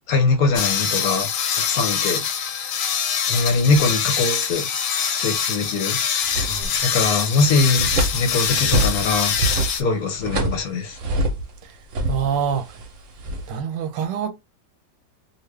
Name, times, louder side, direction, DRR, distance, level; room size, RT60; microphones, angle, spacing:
voice 1, 0.1-1.3 1.5-2.2 3.3-4.7 5.1-6.0 6.8-9.3 9.7-11.0, left 3 dB, 65° left, 1.0 m, -22 dB
sound 1, 0.5-9.8, left 7 dB, 85° left, 1.3 m, -24 dB
sound 2, 6.2-7.0 7.3-11.6 11.9-13.6, right 1 dB, 55° right, 0.9 m, -25 dB
voice 2, 12.1-12.7 13.5-14.3, right 7 dB, 85° right, 1.3 m, -25 dB
2.9 x 2.4 x 3.2 m
omnidirectional pair, 1.9 m